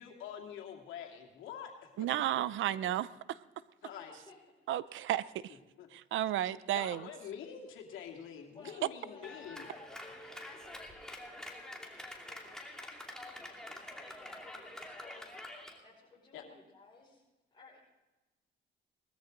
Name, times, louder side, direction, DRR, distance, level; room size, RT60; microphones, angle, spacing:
voice 1, 0.0-2.1 2.6-2.7 3.8-4.1 5.8-5.9 6.7-9.7 16.3-16.4, left 8 dB, 85° left, 2 dB, 2.4 m, -46 dB
voice 2, 2.0-3.4 4.7-5.6 5.9-7.1, right 12 dB, 75° right, 18 dB, 0.6 m, -33 dB
voice 3, 3.8-4.4 4.9-5.1 8.5-17.2 17.5-17.8, left 3 dB, 20° left, -7 dB, 5.9 m, -59 dB
Clapping, 9.2-15.8, left 1 dB, 5° left, 2.7 m, -47 dB
20.0 x 13.5 x 3.9 m, 1.1 s
cardioid pair, 90°, 20 cm